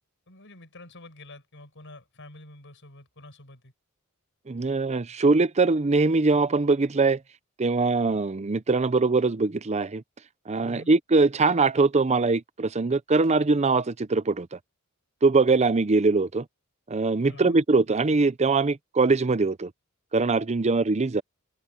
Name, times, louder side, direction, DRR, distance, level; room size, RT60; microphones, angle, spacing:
voice 1, 0.3-3.7 10.6-10.9 17.2-17.6, left 1 dB, 60° left, 6.1 m, -47 dB
voice 2, 4.5-7.2 7.6-10.0 10.5-14.6 15.2-16.4 16.9-19.7 20.1-21.2, right 3 dB, 30° right, 0.6 m, -22 dB
head